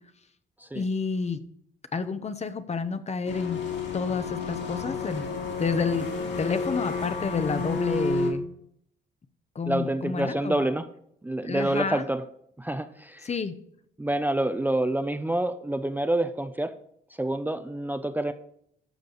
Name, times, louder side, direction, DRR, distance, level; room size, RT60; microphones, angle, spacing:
voice 1, 0.7-1.4 1.9-3.6 3.9-5.3 5.6-6.1 6.4-8.5 9.5-10.6 11.4-12.0 13.2-13.5, left 4 dB, 35° left, 11 dB, 0.9 m, -29 dB
sound 1, 3.2-8.3, left 4 dB, 60° left, 3.4 m, -30 dB
voice 2, 9.7-10.9 11.2-12.2 12.6-13.3 14.0-16.7 17.2-18.3, right 1 dB, 10° right, 8 dB, 0.6 m, -27 dB
12.0 x 6.8 x 4.0 m, 0.69 s
cardioid pair, 90°, 20 cm